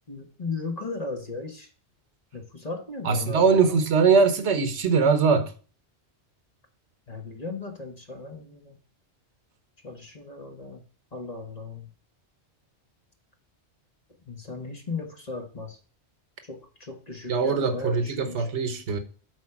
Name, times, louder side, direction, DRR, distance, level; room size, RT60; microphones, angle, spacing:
voice 1, 0.1-1.7 2.3-3.8 7.1-8.8 9.8-10.8 11.1-11.9 14.2-15.8 16.4-18.5, left 3 dB, 35° left, 1.5 m, -36 dB
voice 2, 3.0-5.5 17.3-19.0, right 5 dB, 80° right, 1.2 m, -21 dB
7.9 x 4.2 x 5.9 m
omnidirectional pair, 1.1 m